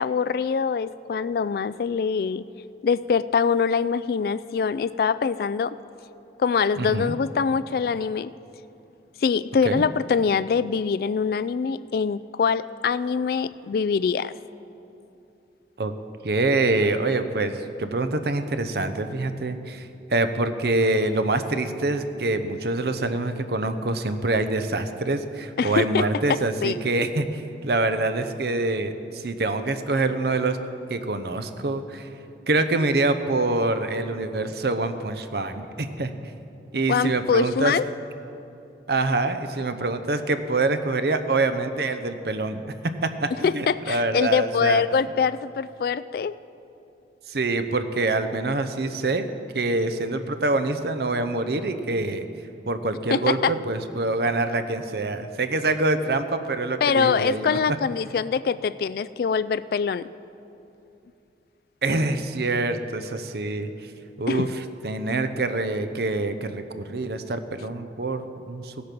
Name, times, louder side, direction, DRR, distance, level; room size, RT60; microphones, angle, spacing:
voice 1, 0.0-2.4 2.8-5.7 6.4-8.3 9.2-14.3 25.6-26.0 26.3-26.8 36.9-37.8 43.4-46.4 53.1-53.5 56.8-60.1 64.3-64.4, left 6 dB, 55° left, 16 dB, 0.3 m, -24 dB
voice 2, 6.8-7.1 9.6-9.8 15.8-15.9 16.2-30.6 30.9-32.1 32.5-36.1 36.7-37.7 38.9-42.7 43.2-44.8 47.3-49.3 49.5-52.3 52.7-57.6 61.8-63.9 64.2-68.7, right 2 dB, 60° right, 9 dB, 0.7 m, -25 dB
16.5 x 8.5 x 6.0 m, 2.8 s
head